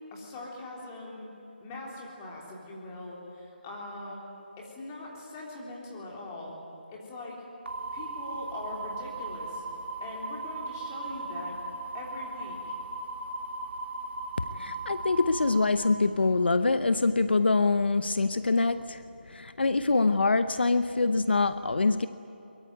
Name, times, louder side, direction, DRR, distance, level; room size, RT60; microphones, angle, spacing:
voice 1, 0.1-1.3 1.6-4.2 4.6-6.6 6.9-7.4 7.9-9.6 10.0-11.6 11.9-12.7, left 2 dB, 15° left, -3 dB, 3.6 m, -41 dB
sound 1, 7.7-15.6, right 2 dB, 75° right, 1.9 m, -37 dB
voice 2, 14.5-19.0 19.3-22.1, left 3 dB, 70° left, 11 dB, 0.9 m, -25 dB
22.5 x 22.5 x 9.4 m, 3.0 s
figure-of-eight pair, 170°, 6 cm